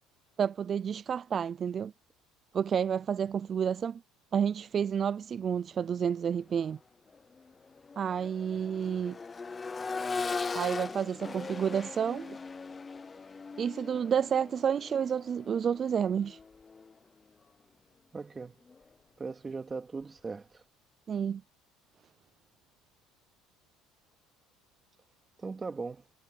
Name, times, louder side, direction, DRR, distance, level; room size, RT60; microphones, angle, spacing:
voice 1, 0.4-1.9 2.5-4.0 4.3-6.8 8.0-9.2 10.5-12.4 13.6-16.4 21.1-21.4, right 7 dB, 35° right, 0.4 m, -30 dB
Accelerating revving vroom, 6.5-6.7 7.1-17.0 18.7-18.8, left 4 dB, 20° left, 0.7 m, -40 dB
voice 2, 18.1-18.5 19.2-20.6 25.4-26.1, right 4 dB, 20° right, 2.5 m, -39 dB
supercardioid pair, 110°, 0 cm